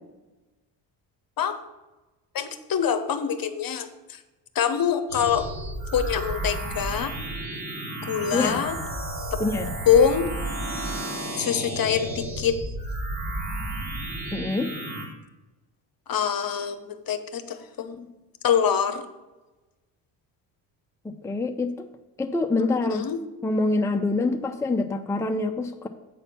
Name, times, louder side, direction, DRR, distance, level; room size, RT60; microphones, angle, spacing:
voice 1, 2.3-4.2 4.5-5.5 5.9-7.1 8.0-8.7 9.9-10.3 11.3-12.6 16.1-18.1 18.4-19.0 22.8-23.2, left 8 dB, 45° left, 9 dB, 1.0 m, -24 dB
sound 1, 5.1-15.1, right 1 dB, 55° right, 2.9 m, -32 dB
voice 2, 9.4-9.7 14.3-14.7 21.0-21.9 22.2-23.0 23.4-25.9, left 2 dB, 5° left, 4 dB, 0.6 m, -25 dB
8.2 x 4.2 x 6.9 m, 1.1 s
hypercardioid pair, 60°, 49 cm